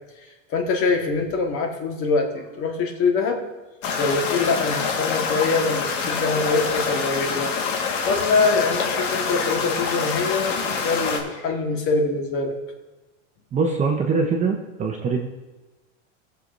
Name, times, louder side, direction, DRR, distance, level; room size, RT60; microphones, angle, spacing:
voice 1, 0.5-3.4 4.0-7.5 8.1-12.6, left 4 dB, 35° left, 2 dB, 1.5 m, -24 dB
sound 1, 3.8-11.2, left 5 dB, 85° left, 1.7 m, -26 dB
voice 2, 13.5-15.3, right 4 dB, 20° right, 2 dB, 0.8 m, -23 dB
19.0 x 6.9 x 2.6 m, 1.1 s
supercardioid pair, 150°, 37 cm